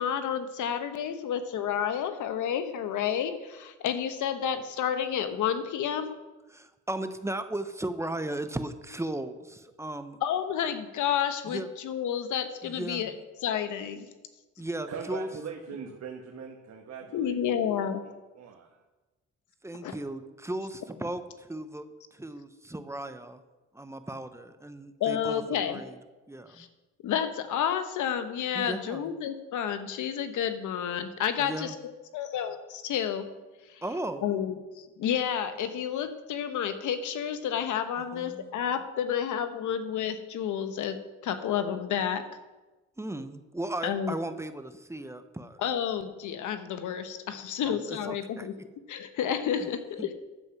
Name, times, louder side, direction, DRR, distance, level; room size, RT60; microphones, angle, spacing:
voice 1, 0.0-6.1 10.2-13.1 13.4-14.1 17.1-18.0 19.8-19.9 25.0-25.8 26.5-26.7 27.0-31.7 32.1-33.2 34.2-41.0 41.2-42.2 43.8-44.2 45.6-48.5 48.9-50.1, left 9 dB, 80° left, 9 dB, 1.1 m, -30 dB
voice 2, 6.5-10.2 11.5-11.7 12.6-13.2 14.6-15.3 19.6-23.4 23.7-25.4 25.7-26.0 26.3-26.7 28.5-29.1 31.4-31.8 33.8-34.3 38.1-38.5 43.0-45.6 47.7-48.5 49.6-49.7 50.0-50.1, right 1 dB, 10° right, 10 dB, 0.8 m, -36 dB
voice 3, 14.8-17.9 18.3-18.8, right 6 dB, 60° right, 1 dB, 1.4 m, -41 dB
11.0 x 7.7 x 5.9 m, 1.2 s
cardioid pair, 90°, 30 cm